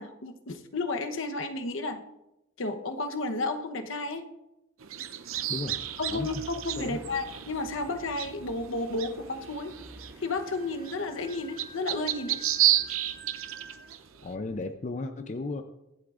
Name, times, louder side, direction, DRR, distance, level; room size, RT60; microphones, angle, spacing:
voice 1, 0.0-2.0 2.6-4.3 6.0-9.7 10.2-12.4, left 2 dB, 70° left, 6 dB, 1.0 m, -32 dB
sound 1, 4.8-14.3, right 12 dB, 85° right, 0.7 m, -32 dB
sound 2, 5.3-14.6, right 1 dB, 10° right, 3.4 m, -52 dB
voice 2, 5.5-5.8 6.1-6.4 6.8-7.0 14.2-15.6, left 2 dB, 35° left, 7 dB, 0.5 m, -34 dB
Wind instrument woodwind instrument, 10.2-13.9, right 2 dB, 45° right, 3.6 m, -50 dB
23.0 x 8.2 x 2.5 m, 0.92 s
head